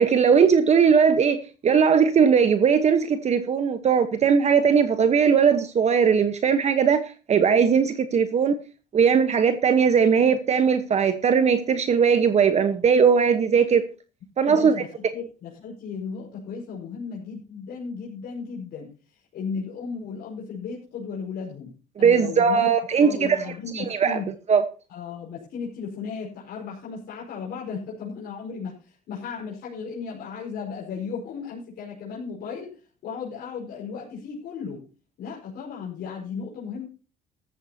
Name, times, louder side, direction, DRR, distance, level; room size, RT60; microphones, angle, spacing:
voice 1, 0.0-8.5 8.9-13.8 14.4-14.8 22.0-23.4 23.7-24.2 24.5-24.6, right 6 dB, 40° right, 1.2 m, -19 dB
voice 2, 14.4-22.7 23.0-24.3 24.9-34.9 35.2-36.9, left 5 dB, 70° left, 5.1 m, -35 dB
15.0 x 13.5 x 2.9 m
cardioid pair, 110°, 17 cm